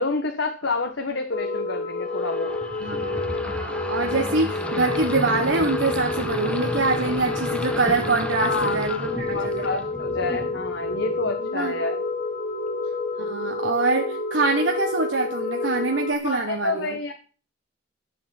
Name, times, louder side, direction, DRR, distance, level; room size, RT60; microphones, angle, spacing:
voice 1, 0.0-2.5 8.4-12.0 16.2-17.1, left 3 dB, 70° left, 4 dB, 1.4 m, -29 dB
sound 1, 1.3-16.1, left 3 dB, 50° left, 1.6 m, -29 dB
sound 2, 2.1-11.4, equal, 5° left, 1.2 m, -33 dB
voice 2, 2.8-9.8 11.5-11.7 13.2-17.0, right 3 dB, 85° right, 3 dB, 1.4 m, -25 dB
12.0 x 7.1 x 7.2 m, 0.38 s
head